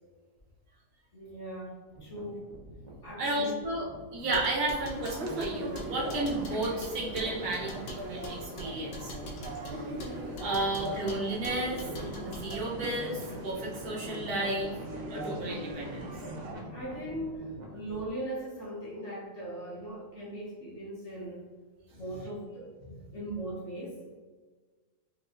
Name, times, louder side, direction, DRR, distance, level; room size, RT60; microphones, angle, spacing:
voice 1, 1.1-2.5 3.0-3.6 16.7-21.5 21.9-24.0, right 1 dB, 45° left, -7 dB, 1.3 m, -39 dB
sound 1, 1.9-18.1, right 1 dB, 40° right, 0.7 m, -45 dB
voice 2, 3.2-9.1 10.4-11.8 12.2-14.8 15.1-16.1, right 1 dB, 70° right, -3 dB, 1.2 m, -33 dB
sound 2, 4.2-12.7, equal, 65° left, 0.6 m, -44 dB
sound 3, 4.9-16.5, right 1 dB, 90° right, 0.5 m, -40 dB
5.2 x 2.9 x 2.4 m, 1.4 s
omnidirectional pair, 1.8 m